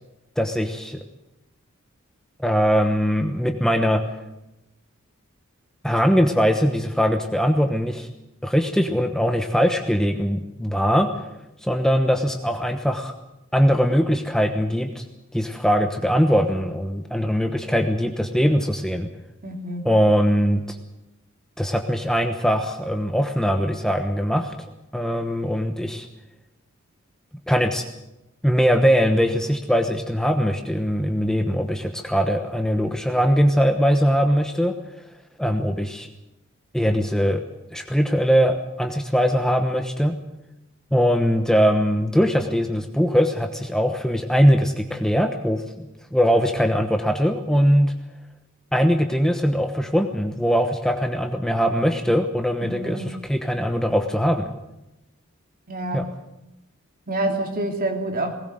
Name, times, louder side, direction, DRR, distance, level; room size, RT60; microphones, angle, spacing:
voice 1, 0.4-1.0 2.4-4.0 5.8-8.1 8.4-11.1 11.6-13.1 13.5-15.0 15.3-19.1 19.8-20.8 21.6-24.5 24.9-26.1 27.5-27.9 28.4-34.7 35.4-36.1 36.7-37.4 37.7-40.2 40.9-47.9 48.7-54.5 55.9-56.0, equal, 5° left, 5 dB, 1.1 m, -21 dB
voice 2, 19.4-19.9 52.6-53.1 55.7-56.1 57.1-58.3, right 1 dB, 45° right, 4 dB, 3.0 m, -27 dB
19.5 x 18.0 x 7.9 m, 0.91 s
head